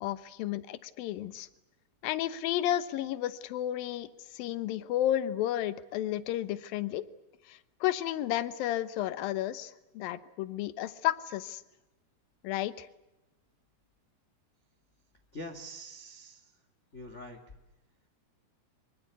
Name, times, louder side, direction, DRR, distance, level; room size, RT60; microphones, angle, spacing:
voice 1, 0.0-1.5 2.0-7.0 7.5-11.6 12.4-12.9, left 12 dB, 70° left, 14 dB, 2.5 m, -32 dB
voice 2, 15.3-16.4 16.9-17.4, equal, 30° left, 5 dB, 1.3 m, -44 dB
25.0 x 25.0 x 8.3 m, 0.99 s
omnidirectional pair, 5.0 m